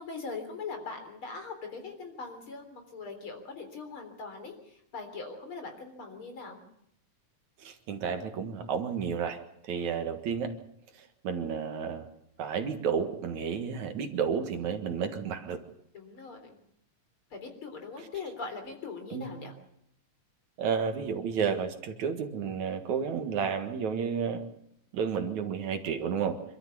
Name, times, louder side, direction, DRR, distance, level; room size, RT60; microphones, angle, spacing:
voice 1, 0.0-6.6 9.8-9.9 15.9-16.6 17.3-19.5, left 4 dB, 40° left, 6 dB, 4.3 m, -41 dB
voice 2, 7.6-10.5 11.2-12.1 12.4-15.6 19.1-19.4 20.6-24.4 24.9-26.4, right 6 dB, 65° right, 6 dB, 2.9 m, -31 dB
26.5 x 13.5 x 8.4 m, 0.74 s
omnidirectional pair, 3.8 m